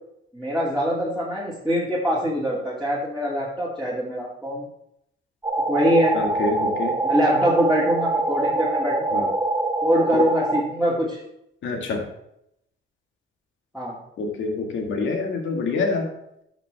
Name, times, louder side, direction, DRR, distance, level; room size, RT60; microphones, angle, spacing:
voice 1, 0.3-4.7 5.7-6.2 7.0-9.2 9.8-11.2 13.7-14.0, equal, ahead, -8 dB, 2.8 m, -23 dB
sound 1, 5.4-10.6, right 2 dB, 15° right, 2.6 m, -24 dB
voice 2, 6.1-7.0 9.1-9.2 10.1-10.3 11.6-12.1 14.2-16.1, left 3 dB, 75° left, 3 dB, 2.0 m, -26 dB
12.5 x 6.1 x 3.5 m, 0.79 s
cardioid pair, 90°, 20 cm